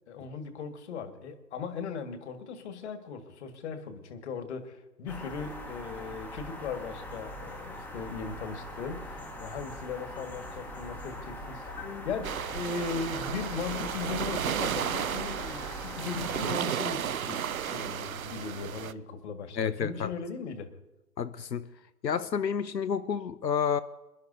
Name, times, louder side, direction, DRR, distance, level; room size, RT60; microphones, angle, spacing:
voice 1, 0.1-11.7 12.0-20.7, left 5 dB, 45° left, 7 dB, 1.8 m, -38 dB
sound 1, 5.1-16.6, equal, 5° left, 1.1 m, -42 dB
voice 2, 11.8-12.1 19.6-20.1 21.2-21.7 22.0-23.8, left 7 dB, 85° left, 11 dB, 0.8 m, -30 dB
sound 2, 12.2-18.9, right 9 dB, 55° right, 0.8 m, -33 dB
27.5 x 11.0 x 2.7 m, 1.0 s
figure-of-eight pair, 135°, 49 cm